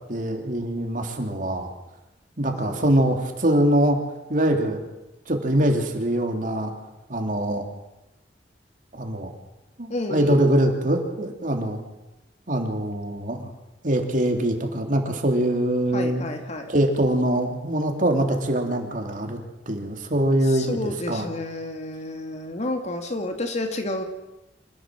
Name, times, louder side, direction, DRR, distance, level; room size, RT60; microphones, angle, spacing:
voice 1, 0.1-1.7 2.4-4.0 4.3-4.8 5.3-6.7 7.1-7.6 8.9-9.3 9.8-11.8 12.5-13.5 13.8-16.3 16.7-19.4 19.7-21.2, right 1 dB, 45° right, 4 dB, 3.1 m, -23 dB
voice 2, 2.5-2.8 9.9-10.5 15.9-16.7 20.4-24.0, left 1 dB, 40° left, 5 dB, 2.7 m, -30 dB
26.5 x 15.0 x 7.6 m, 0.99 s
head